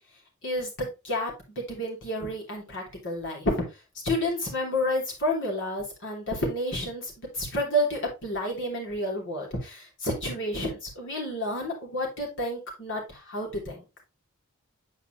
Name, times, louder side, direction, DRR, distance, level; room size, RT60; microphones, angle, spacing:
voice 1, 0.4-3.5 4.0-13.8, left 1 dB, 60° left, 0 dB, 3.1 m, -30 dB
8.4 x 4.8 x 3.0 m, 0.27 s
head